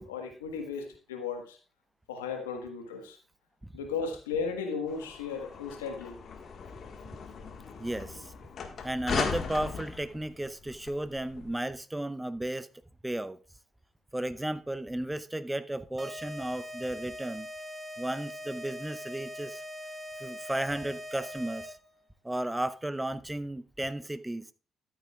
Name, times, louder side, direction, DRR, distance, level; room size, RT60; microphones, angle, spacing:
voice 1, 0.0-1.6 2.1-3.2 3.7-6.2, left 5 dB, 90° left, 1.4 m, -35 dB
sound 1, 4.9-11.5, left 5 dB, 55° left, 1.6 m, -38 dB
voice 2, 7.8-8.3 8.8-12.7 13.0-13.4 14.1-17.5 18.0-19.6 20.2-21.8 22.2-24.5, right 1 dB, 10° right, 0.7 m, -34 dB
sound 2, 16.0-21.9, equal, 30° right, 2.0 m, -42 dB
13.5 x 8.7 x 2.4 m
hypercardioid pair, 45°, 0 cm